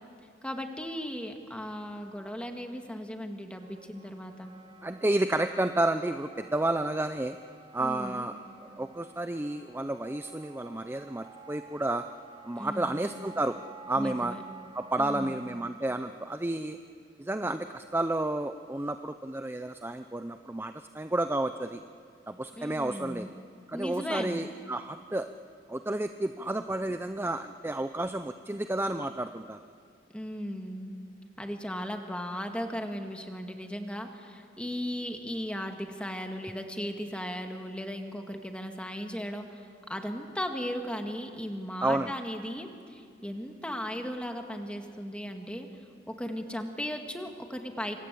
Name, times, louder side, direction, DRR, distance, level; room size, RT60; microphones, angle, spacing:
voice 1, 0.4-4.5 7.8-8.4 12.6-13.1 14.0-14.4 15.0-15.4 22.6-23.3 23.7-24.5 30.1-31.0 31.4-45.7 46.1-48.0, equal, 5° left, 4 dB, 2.1 m, -37 dB
Wind instrument woodwind instrument, 3.6-15.6, right 5 dB, 30° right, 2.3 m, -52 dB
voice 2, 4.8-7.4 7.7-8.3 8.8-12.0 12.4-13.5 13.9-14.3 14.7-16.8 17.2-21.8 22.3-23.3 23.7-25.3 25.7-29.6 41.8-42.1, right 1 dB, 15° right, 8 dB, 0.6 m, -31 dB
27.5 x 25.5 x 8.5 m, 2.3 s
head